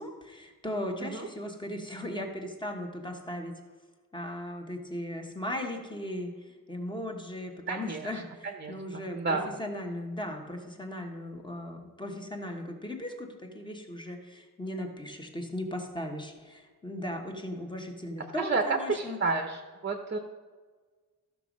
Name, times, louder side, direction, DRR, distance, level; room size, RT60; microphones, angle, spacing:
voice 1, 0.0-3.6 4.1-19.2, left 1 dB, 15° left, 3 dB, 1.2 m, -37 dB
voice 2, 7.7-8.1 8.4-9.5 18.4-20.2, right 4 dB, 30° right, 5 dB, 0.8 m, -31 dB
14.0 x 6.1 x 5.2 m, 1.4 s
wide cardioid pair, 175°, 36 cm